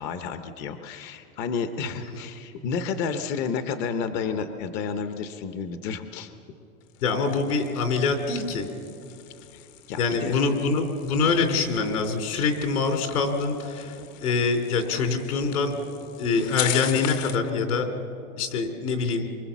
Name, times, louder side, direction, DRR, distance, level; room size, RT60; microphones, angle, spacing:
voice 1, 0.0-6.3 9.5-10.3, left 6 dB, 25° left, 9 dB, 0.7 m, -31 dB
sound 1, 6.8-17.5, left 13 dB, 55° left, 1.1 m, -40 dB
voice 2, 7.0-8.7 10.0-14.0 14.2-15.7 16.2-17.9 18.4-19.3, left 4 dB, 70° left, 6 dB, 3.8 m, -24 dB
24.5 x 23.5 x 7.2 m, 2.7 s
supercardioid pair, 155°, 45 cm